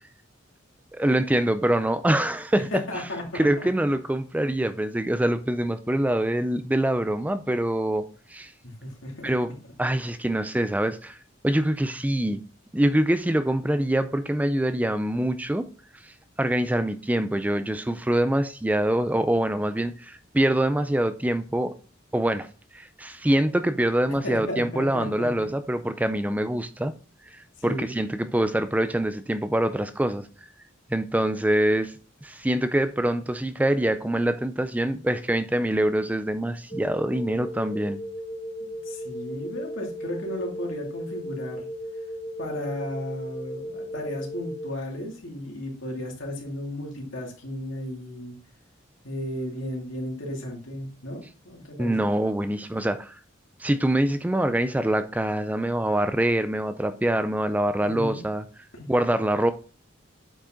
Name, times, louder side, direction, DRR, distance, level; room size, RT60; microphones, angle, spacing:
voice 1, 0.9-2.7 3.3-8.5 9.2-9.5 9.8-11.2 11.4-12.4 12.7-15.6 16.0-16.1 16.4-21.7 22.1-22.5 22.7-26.9 27.3-30.3 30.9-31.9 32.2-38.0 51.8-53.2 53.6-58.4 58.9-59.5, right 1 dB, 10° right, 0.4 m, -24 dB
voice 2, 2.7-3.7 8.6-9.3 24.2-25.3 27.6-27.9 38.6-41.7 42.4-48.3 49.0-52.1 57.8-58.2 58.7-58.9, left 1 dB, 80° left, 2.8 m, -34 dB
sound 1, 36.7-44.7, equal, 35° left, 1.2 m, -36 dB
8.6 x 5.2 x 3.8 m
head